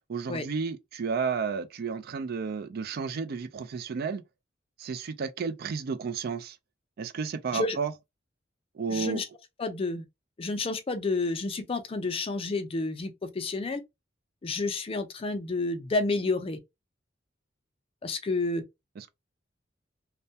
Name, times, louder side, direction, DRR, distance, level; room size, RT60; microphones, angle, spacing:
voice 1, 0.1-4.2 4.8-6.6 7.0-7.9 8.7-9.2 19.0-19.1, right 5 dB, 55° right, 0.4 m, -32 dB
voice 2, 8.9-9.2 9.6-10.0 10.4-13.8 14.4-16.6 18.0-18.6, left 3 dB, 30° left, 0.4 m, -30 dB
2.2 x 2.2 x 2.7 m
head